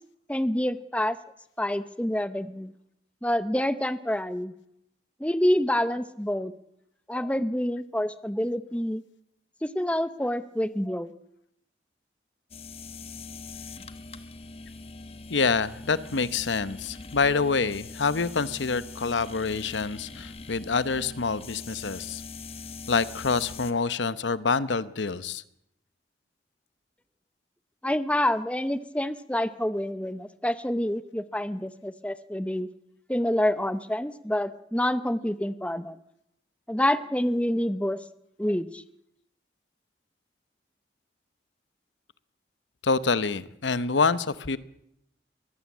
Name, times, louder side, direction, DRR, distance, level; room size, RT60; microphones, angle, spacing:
voice 1, 0.3-1.2 1.6-2.7 3.2-4.5 5.2-6.5 7.1-9.0 9.6-11.1 27.8-32.7 33.1-36.0 36.7-38.0 38.4-38.8, left 1 dB, 5° left, 13 dB, 0.7 m, -27 dB
sound 1, 12.5-23.7, left 3 dB, 35° left, 1.0 m, -42 dB
voice 2, 15.3-22.2 22.9-25.4 42.8-44.6, left 4 dB, 90° left, 15 dB, 0.9 m, -26 dB
23.0 x 15.5 x 8.4 m, 0.76 s
head